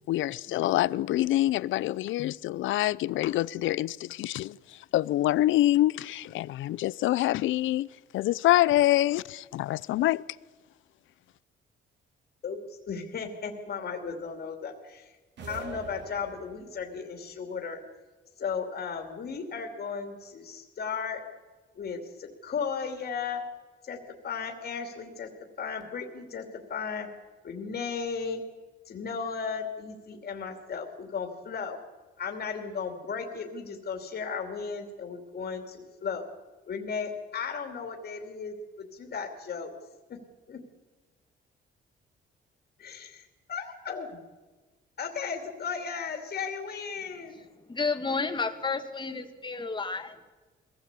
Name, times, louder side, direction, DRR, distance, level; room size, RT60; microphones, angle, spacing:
voice 1, 0.1-4.6 4.9-7.9 8.1-10.2, left 15 dB, 80° left, 0.5 m, -26 dB
voice 2, 12.4-15.2 15.4-17.8 18.4-21.2 21.7-23.4 23.8-24.0 24.2-25.3 25.6-27.1 27.4-28.4 28.9-31.8 32.2-36.2 36.7-39.7 40.1-40.2 40.5-40.6 42.8-44.2 45.0-47.4, left 6 dB, 55° left, 2.7 m, -35 dB
sound 1, 15.4-16.9, right 5 dB, 60° right, 2.8 m, -43 dB
voice 3, 47.7-50.2, left 4 dB, 25° left, 2.0 m, -31 dB
21.5 x 16.0 x 8.3 m
cardioid pair, 90°, 20 cm